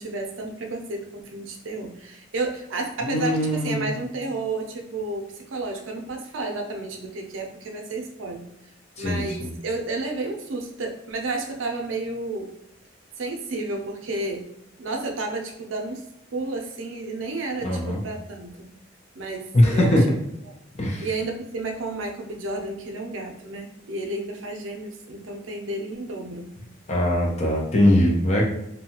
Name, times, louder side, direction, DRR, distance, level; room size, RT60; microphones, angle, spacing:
voice 1, 0.0-8.5 9.0-12.5 13.2-14.4 14.8-16.0 16.3-18.7 19.2-20.1 20.4-20.5 21.0-26.5, right 2 dB, 80° right, 2 dB, 0.5 m, -31 dB
voice 2, 3.0-4.0 9.0-9.5 17.6-18.0 19.5-20.0 20.8-21.1 26.9-28.4, left 1 dB, 35° left, -1 dB, 0.6 m, -21 dB
2.7 x 2.2 x 2.8 m, 0.84 s
head